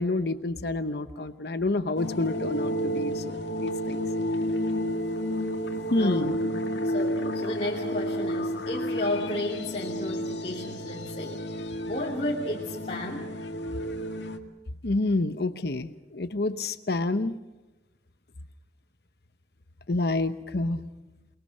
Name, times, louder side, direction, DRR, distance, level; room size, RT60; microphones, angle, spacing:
voice 1, 0.0-4.0 5.9-6.4 6.7-6.8 14.8-17.4 19.9-20.8, left 2 dB, 60° left, 10 dB, 0.9 m, -28 dB
sound 1, 2.0-14.4, equal, 85° left, 2.0 m, -31 dB
voice 2, 6.8-13.5, left 1 dB, 35° left, -3 dB, 2.8 m, -33 dB
29.0 x 21.0 x 6.6 m, 1.1 s
head